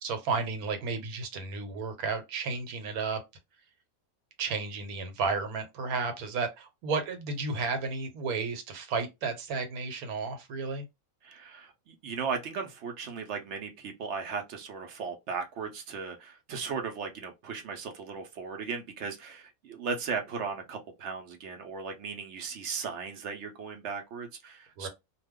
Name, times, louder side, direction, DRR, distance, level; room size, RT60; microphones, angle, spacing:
voice 1, 0.0-3.2 4.4-10.8 24.8-24.9, right 4 dB, 80° right, 1.2 m, -32 dB
voice 2, 11.2-24.9, right 5 dB, 65° right, 0.8 m, -37 dB
2.4 x 2.3 x 3.5 m
omnidirectional pair, 1.5 m